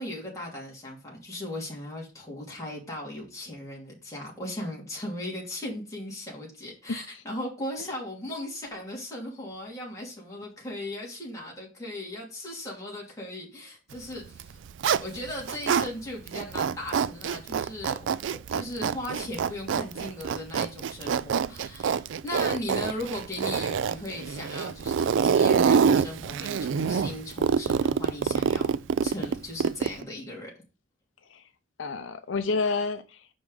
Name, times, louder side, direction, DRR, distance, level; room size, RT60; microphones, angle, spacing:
voice 1, 0.0-14.6 15.0-18.0 18.5-28.8 29.0-30.5, left 1 dB, 15° left, 2.9 m, -37 dB
voice 2, 6.9-7.2 7.8-7.9 31.2-31.5 31.8-33.3, left 4 dB, 75° left, 0.6 m, -30 dB
Zipper (clothing), 14.3-15.9 16.3-30.0, right 6 dB, 70° right, 0.4 m, -26 dB
6.1 x 5.3 x 4.8 m
head